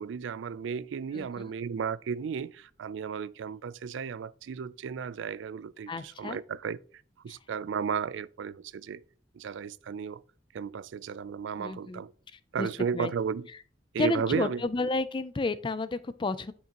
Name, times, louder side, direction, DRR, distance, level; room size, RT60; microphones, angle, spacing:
voice 1, 0.0-6.8 7.2-9.0 9.3-10.2 10.5-12.1 12.5-13.5 13.9-14.9, right 6 dB, 90° right, 0.3 m, -34 dB
voice 2, 1.1-1.5 5.9-6.4 7.3-7.4 11.6-12.0 12.6-12.7 12.9-13.1 14.0-16.5, left 3 dB, 25° left, 0.4 m, -31 dB
9.2 x 5.4 x 2.9 m
head